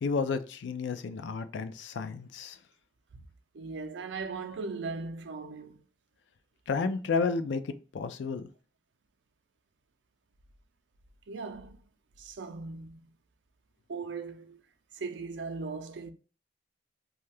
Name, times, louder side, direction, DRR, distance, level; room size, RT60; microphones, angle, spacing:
voice 1, 0.0-2.6 6.7-7.6 7.9-8.5, left 4 dB, 85° left, 0.4 m, -31 dB
voice 2, 3.5-5.8 11.3-11.8 12.2-13.0 13.9-14.6 14.9-16.1, right 4 dB, 80° right, 0.5 m, -38 dB
2.7 x 2.3 x 3.2 m
head